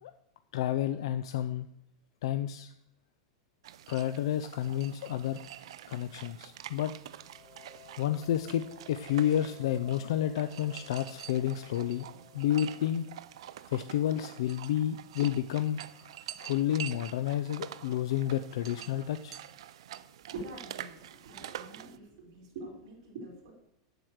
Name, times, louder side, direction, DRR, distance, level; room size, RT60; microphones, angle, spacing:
voice 1, 0.5-1.7 2.2-2.7 3.9-5.4 5.9-6.9 8.0-8.6 8.9-12.0 12.3-13.1 13.7-16.1 16.4-19.4, left 11 dB, 75° left, 10 dB, 0.5 m, -30 dB
sound 1, 3.6-22.0, right 11 dB, 85° right, 0.5 m, -47 dB
sound 2, 7.1-13.7, left 6 dB, 10° left, 2.3 m, -56 dB
voice 2, 20.3-23.5, right 2 dB, 60° right, -4 dB, 3.7 m, -45 dB
9.0 x 7.8 x 6.4 m, 0.84 s
supercardioid pair, 165°, 3 cm